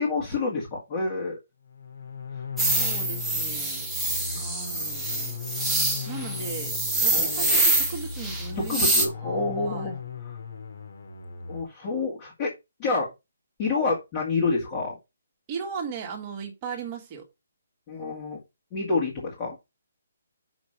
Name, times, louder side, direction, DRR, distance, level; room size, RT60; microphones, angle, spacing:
voice 1, 0.0-1.4 4.3-4.5 7.1-7.6 8.6-10.0 10.2-10.4 11.5-12.5 12.8-13.1 13.6-15.0 17.9-18.4 18.7-19.6, left 3 dB, 20° left, 2.1 m, -28 dB
sound 1, 1.6-11.6, left 5 dB, 60° left, 2.6 m, -38 dB
sound 2, 2.6-9.0, right 2 dB, ahead, 1.1 m, -25 dB
voice 2, 2.6-5.4 6.1-8.9 9.2-9.9 15.5-17.3, right 5 dB, 20° right, 1.9 m, -38 dB
6.3 x 5.9 x 5.0 m
hypercardioid pair, 175°, 0 cm